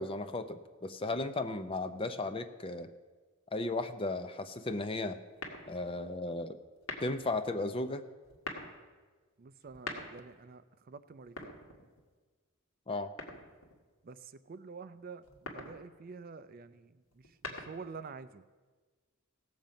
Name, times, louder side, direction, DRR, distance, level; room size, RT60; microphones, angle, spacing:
voice 1, 0.0-2.9 3.5-5.2 5.7-6.6 7.0-8.0 12.9-13.1, left 2 dB, 25° left, 9 dB, 0.5 m, -35 dB
sound 1, 5.4-6.0 6.8-7.3 8.2-8.8 9.6-10.4 11.2-12.1 13.2-13.8 15.2-15.8 17.1-18.0, left 3 dB, 75° left, 1.7 m, -43 dB
voice 2, 9.4-11.5 14.0-18.4, right 4 dB, 40° right, 13 dB, 0.4 m, -48 dB
17.0 x 7.3 x 5.2 m, 1.4 s
head